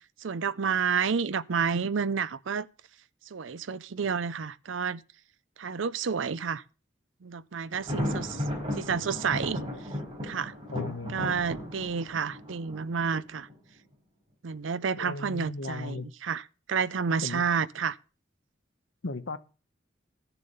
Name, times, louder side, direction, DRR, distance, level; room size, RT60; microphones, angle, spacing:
voice 1, 0.2-2.7 3.3-5.0 5.6-6.6 7.2-8.4 8.8-9.6 10.2-10.5 11.1-13.5 14.4-16.4 16.7-18.0, right 6 dB, 80° right, 0.6 m, -30 dB
Thunder, 7.7-13.5, left 1 dB, 30° right, 4.5 m, -35 dB
voice 2, 10.7-11.2 15.0-16.1 17.2-17.4 19.0-19.4, left 3 dB, 75° left, 1.0 m, -36 dB
14.0 x 6.9 x 5.4 m
head